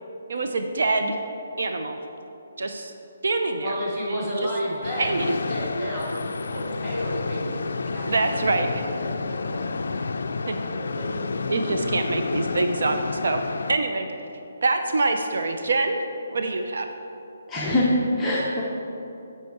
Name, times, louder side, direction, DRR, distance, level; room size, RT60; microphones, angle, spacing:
voice 1, 0.3-1.2 1.6-2.0 2.6-2.9 3.2-3.7 4.1-4.3 5.0-5.3 8.1-8.7 10.5-10.6 11.5-13.0 13.2-13.4 13.7-14.1 14.6-16.0 16.3-16.9, right 3 dB, 65° right, 5 dB, 0.5 m, -25 dB
voice 2, 3.6-7.6 7.9-8.0 8.3-9.7 10.7-11.1, equal, 15° right, -7 dB, 1.5 m, -31 dB
sound 1, 4.8-13.8, left 4 dB, 70° left, 0.3 m, -30 dB
voice 3, 17.5-18.6, left 1 dB, 10° left, -7 dB, 0.5 m, -23 dB
8.1 x 4.6 x 4.6 m, 2.8 s
hypercardioid pair, 175°, 0 cm